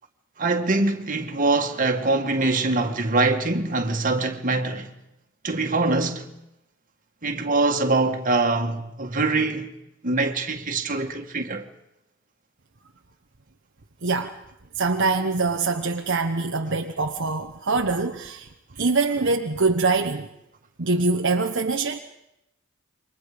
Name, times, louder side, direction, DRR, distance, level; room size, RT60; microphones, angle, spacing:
voice 1, 0.4-4.9 5.4-6.3 7.2-9.7 10.0-11.6, right 3 dB, 40° right, 2.1 m, -23 dB
voice 2, 14.0-14.3 14.8-18.5 18.8-20.3 20.8-22.0, right 3 dB, 60° right, 1.1 m, -24 dB
28.5 x 24.5 x 5.2 m
head